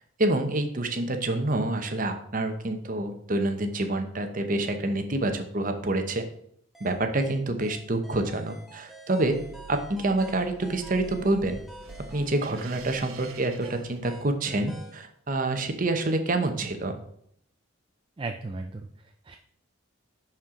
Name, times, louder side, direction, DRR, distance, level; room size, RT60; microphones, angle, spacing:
voice 1, 0.2-6.2 6.8-9.4 9.7-11.6 12.1-17.0, right 2 dB, 40° right, 7 dB, 0.8 m, -27 dB
sound 1, 6.7-15.0, right 1 dB, ahead, 1.1 m, -48 dB
sound 2, 9.2-14.5, right 4 dB, 80° right, 0.6 m, -46 dB
voice 2, 18.2-19.4, right 3 dB, 25° right, 4 dB, 0.3 m, -36 dB
11.0 x 4.5 x 3.7 m, 0.69 s
head